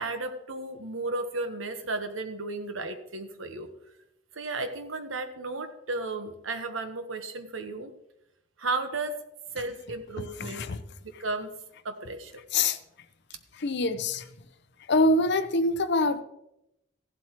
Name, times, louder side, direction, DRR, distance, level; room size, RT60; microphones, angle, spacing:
voice 1, 0.0-3.7 4.3-7.9 8.6-9.2 9.5-10.7 11.0-11.5 11.8-12.4, right 3 dB, 90° right, 8 dB, 1.1 m, -34 dB
voice 2, 10.4-10.8 12.5-12.8 13.5-14.3 14.8-16.2, left 2 dB, 60° left, 11 dB, 0.8 m, -25 dB
15.0 x 11.5 x 3.0 m, 0.84 s
head